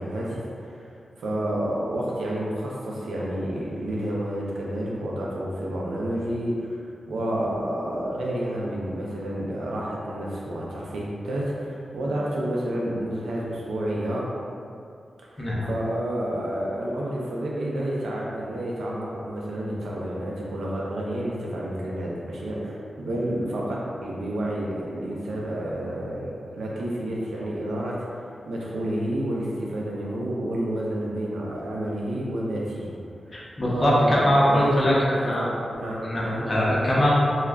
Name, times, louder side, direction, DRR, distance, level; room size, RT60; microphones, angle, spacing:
voice 1, 0.0-6.8 7.1-14.3 15.2-33.0 33.3-33.5 33.7-36.5, right 1 dB, 85° right, -4 dB, 0.5 m, -30 dB
voice 2, 15.4-15.7 33.3-34.9 35.3-35.4 36.0-37.2, equal, 40° left, -7 dB, 0.6 m, -22 dB
2.3 x 2.1 x 3.4 m, 2.4 s
cardioid pair, 55°, 0 cm